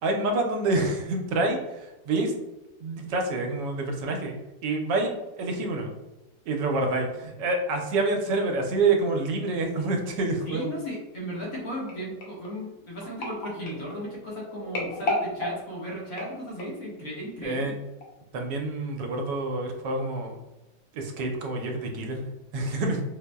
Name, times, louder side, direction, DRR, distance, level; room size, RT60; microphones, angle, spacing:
voice 1, 0.0-2.3 2.8-5.9 6.5-10.7 17.4-17.8 18.3-20.4 20.9-23.0, right 2 dB, 80° right, 2 dB, 1.2 m, -27 dB
voice 2, 10.4-17.7, equal, 55° left, -5 dB, 1.3 m, -36 dB
sound 1, 11.9-16.9 17.5-17.7 18.0-18.1, left 2 dB, 70° left, 1.3 m, -34 dB
5.1 x 2.0 x 2.2 m, 1.0 s
omnidirectional pair, 1.9 m